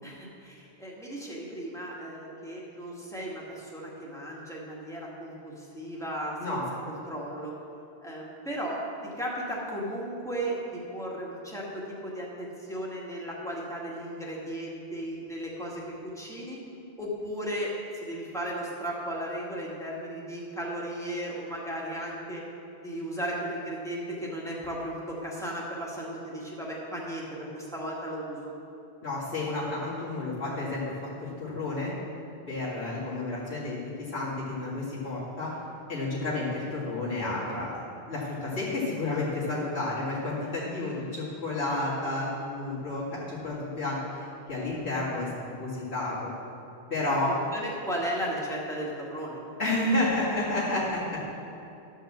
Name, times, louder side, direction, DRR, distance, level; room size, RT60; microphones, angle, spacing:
voice 1, 0.0-6.6 6.9-7.5 8.0-8.8 9.2-16.6 17.0-22.5 22.8-28.5 47.3-49.4, right 1 dB, 5° left, -5 dB, 2.0 m, -35 dB
voice 2, 29.0-30.8 31.2-31.9 32.5-35.5 35.9-46.3 46.9-47.3 49.6-51.2, left 2 dB, 90° left, -9 dB, 2.6 m, -31 dB
11.5 x 5.6 x 7.4 m, 2.7 s
omnidirectional pair, 1.1 m